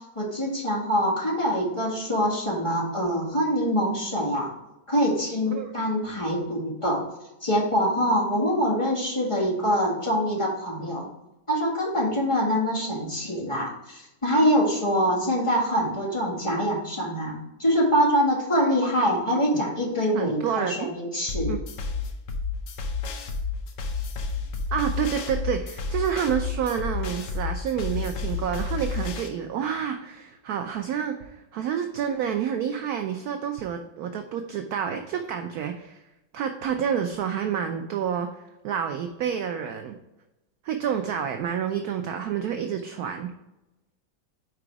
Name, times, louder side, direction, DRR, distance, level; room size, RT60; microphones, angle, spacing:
voice 1, 0.1-4.5 4.9-7.0 7.4-11.0 11.5-21.6, equal, 15° left, -6 dB, 1.6 m, -24 dB
voice 2, 20.1-20.9 21.5-21.6 24.7-36.0 36.3-40.0 40.6-43.3, right 8 dB, 75° right, 6 dB, 0.8 m, -29 dB
sound 1, 21.3-29.3, left 4 dB, 65° left, 1.4 m, -31 dB
5.0 x 4.8 x 4.6 m, 0.97 s
omnidirectional pair, 2.1 m